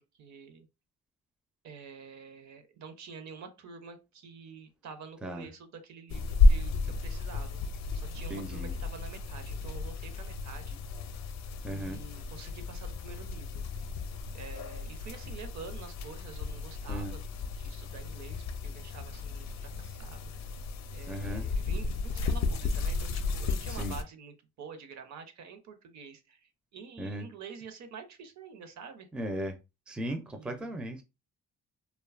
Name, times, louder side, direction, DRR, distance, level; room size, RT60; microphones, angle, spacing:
voice 1, 0.2-0.7 1.6-7.6 7.9-10.8 11.7-13.6 14.3-20.2 20.9-29.1 30.3-30.8, right 5 dB, 65° right, 0.7 m, -48 dB
sound 1, 6.1-24.0, left 3 dB, 65° left, 0.5 m, -32 dB
voice 2, 8.3-8.7 11.6-12.0 16.9-17.1 21.1-21.5 23.7-24.0 27.0-27.3 29.1-29.6 29.9-31.0, right 1 dB, 5° right, 0.4 m, -36 dB
2.6 x 2.2 x 2.4 m
cardioid pair, 90°, 30 cm